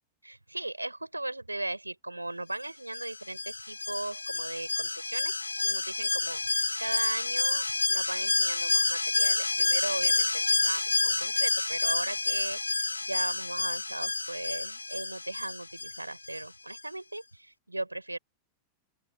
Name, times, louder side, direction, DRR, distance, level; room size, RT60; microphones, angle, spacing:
voice 1, 0.2-18.2, right 2 dB, 85° right, 4.8 m, -37 dB
Alarm, 2.9-16.4 16.7-16.8, left 3 dB, 80° left, 0.3 m, -29 dB
open air
figure-of-eight pair, 90°, 0 cm